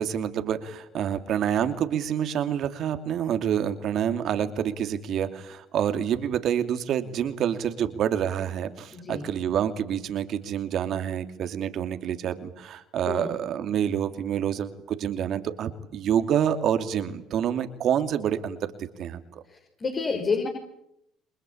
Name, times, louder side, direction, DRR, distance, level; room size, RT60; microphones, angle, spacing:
voice 1, 0.0-18.7 19.0-19.4, right 9 dB, 60° right, 8 dB, 2.8 m, -27 dB
voice 2, 8.9-9.3 13.1-13.4 19.5-20.5, left 4 dB, 35° left, 4 dB, 5.8 m, -29 dB
29.0 x 22.5 x 8.7 m, 0.80 s
supercardioid pair, 75°, 0 cm